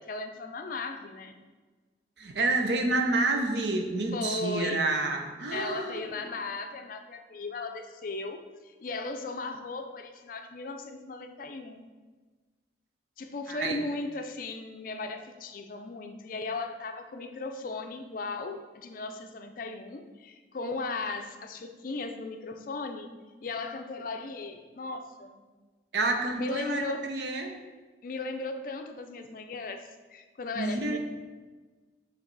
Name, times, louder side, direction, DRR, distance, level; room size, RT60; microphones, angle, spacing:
voice 1, 0.0-1.4 4.1-4.8 5.5-11.9 13.2-23.1 23.4-25.4 26.4-27.1 28.0-31.0, left 3 dB, 50° left, 7 dB, 0.5 m, -37 dB
voice 2, 2.2-6.1 13.5-13.8 25.9-27.5 30.6-31.0, right 2 dB, 75° right, 4 dB, 0.7 m, -29 dB
7.2 x 3.3 x 4.0 m, 1.3 s
head